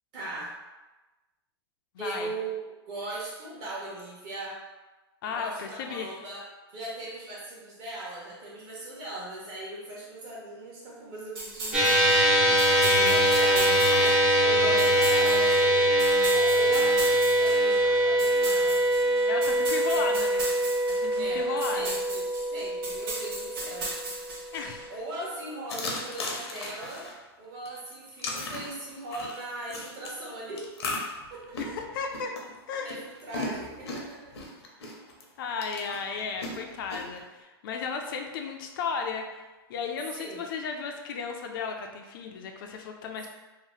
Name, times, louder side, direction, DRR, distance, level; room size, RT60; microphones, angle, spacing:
voice 1, 0.1-0.5 2.0-4.6 5.4-6.5 6.7-12.1 12.6-18.8 19.8-20.2 21.2-23.9 24.9-27.1 27.4-30.7 31.3-31.7 32.8-34.4 40.2-40.4, right 2 dB, 35° right, -5 dB, 1.0 m, -39 dB
voice 2, 1.9-2.3 5.2-6.1 12.5-12.8 13.9-14.0 19.3-20.4 20.9-22.0 24.5-24.8 31.6-32.3 32.7-33.0 35.4-39.4 39.7-43.3, left 5 dB, 55° left, 3 dB, 0.4 m, -34 dB
sound 1, 11.3-24.8, right 2 dB, 60° right, 0.9 m, -38 dB
sound 2, 11.7-24.3, right 1 dB, 10° right, 0.4 m, -23 dB
sound 3, 25.7-27.1 27.6-30.1 30.6-35.2 35.6-37.2, left 2 dB, 80° left, 0.7 m, -36 dB
2.8 x 2.1 x 3.0 m, 1.1 s
hypercardioid pair, 145°, 13 cm